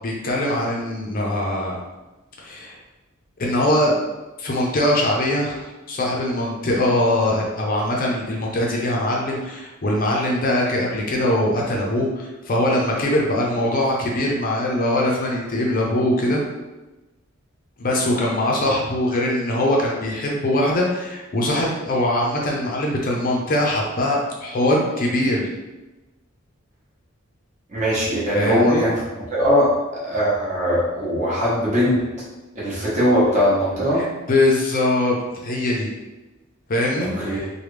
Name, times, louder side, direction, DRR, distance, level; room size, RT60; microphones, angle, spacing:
voice 1, 0.0-1.8 2.4-2.7 3.4-3.9 4.4-16.4 17.8-25.5 28.3-28.8 33.9-35.1 35.4-35.9 36.7-37.5, left 1 dB, 45° left, -2 dB, 0.5 m, -22 dB
voice 2, 27.7-29.0 29.3-29.8 30.0-32.0 32.5-34.1 37.2-37.4, equal, 35° right, -7 dB, 1.1 m, -20 dB
3.3 x 2.2 x 3.1 m, 1.1 s
head